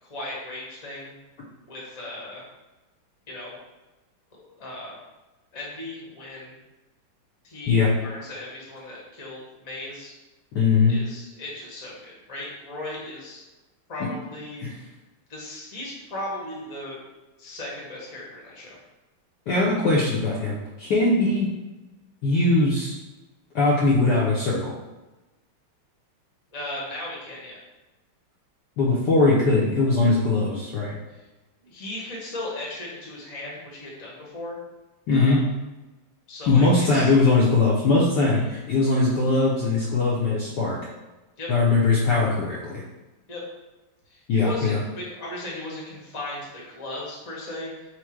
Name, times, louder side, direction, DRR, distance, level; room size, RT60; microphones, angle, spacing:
voice 1, 0.0-1.2 1.7-2.4 3.3-3.6 4.4-5.0 5.5-6.6 7.4-10.1 10.9-13.4 13.9-14.9 15.3-17.0 17.4-18.8 26.5-27.6 31.1-31.3 31.6-34.6 35.1-35.4 36.3-37.1 41.4-41.5 43.3-43.4 44.1-48.0, left 1 dB, 30° left, -5 dB, 0.7 m, -37 dB
voice 2, 10.5-11.0 14.6-14.7 19.5-21.5 22.2-22.9 23.5-24.7 28.8-30.9 35.1-35.4 36.5-40.8 41.5-42.8 44.3-44.8, left 3 dB, 70° left, -5 dB, 1.1 m, -20 dB
4.4 x 2.1 x 4.4 m, 1.1 s
omnidirectional pair, 2.3 m